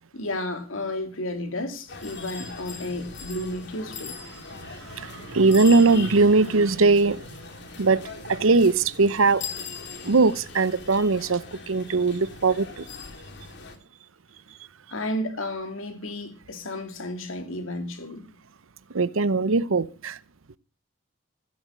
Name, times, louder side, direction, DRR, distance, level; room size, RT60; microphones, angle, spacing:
voice 1, 0.1-4.2 14.9-18.3, left 1 dB, 75° left, 2.6 m, -32 dB
sound 1, 1.9-13.8, left 4 dB, 60° left, 2.8 m, -40 dB
voice 2, 4.6-7.3 7.8-8.0 8.3-9.4 10.0-12.8 18.9-20.2, right 3 dB, 90° right, 0.8 m, -20 dB
15.5 x 8.7 x 6.3 m
head